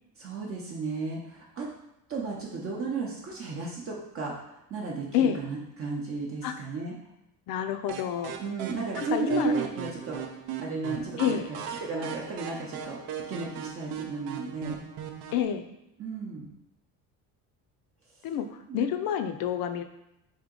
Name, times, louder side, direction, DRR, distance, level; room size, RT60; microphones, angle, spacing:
voice 1, 0.2-1.7 2.1-6.9 8.4-10.2 10.6-11.4 11.8-14.8 16.0-16.5 18.7-18.8, right 4 dB, 40° right, -3 dB, 0.6 m, -34 dB
voice 2, 7.5-8.4 9.0-9.5 11.2-11.5 15.3-15.7 18.2-19.8, left 9 dB, 70° left, 8 dB, 0.5 m, -28 dB
sound 1, 7.9-15.4, right 8 dB, 85° right, 0.6 m, -39 dB
3.5 x 2.8 x 3.7 m, 0.87 s
cardioid pair, 130°, 36 cm